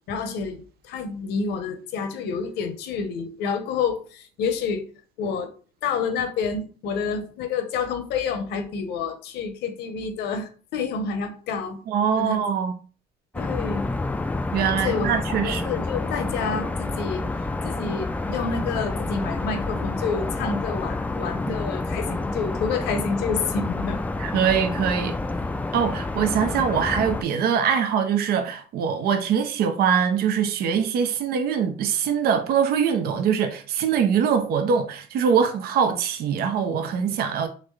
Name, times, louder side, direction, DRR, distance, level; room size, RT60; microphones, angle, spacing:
voice 1, 0.1-4.8 5.2-5.5 5.8-11.8 12.2-12.4 13.3-13.9 14.8-15.1 15.4-17.3 17.6-24.0, left 5 dB, 80° left, 0.9 m, -28 dB
voice 2, 11.9-12.7 14.5-15.7 21.5-21.6 24.2-25.2 25.7-37.5, right 7 dB, 65° right, 0.6 m, -23 dB
sound 1, 13.3-27.2, left 2 dB, 10° left, 0.3 m, -29 dB
4.0 x 3.2 x 3.2 m
cardioid pair, 110°, 17 cm